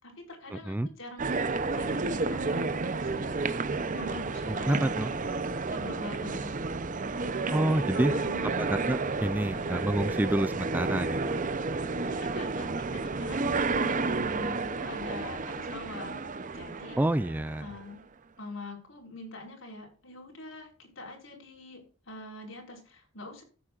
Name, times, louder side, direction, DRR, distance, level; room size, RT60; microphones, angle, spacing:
voice 1, 0.0-3.5 3.9-6.6 7.2-8.6 9.5-9.8 12.0-16.2 16.5-17.0 17.6-18.0 18.4-23.4, left 2 dB, 70° left, 0 dB, 5.2 m, -44 dB
sound 1, 1.2-17.8, right 3 dB, 40° right, 0.7 m, -31 dB
voice 2, 4.5-5.1 7.5-8.1 8.6-11.4 17.0-17.7, right 1 dB, 10° right, 15 dB, 0.3 m, -28 dB
14.5 x 8.5 x 2.5 m, 0.37 s
head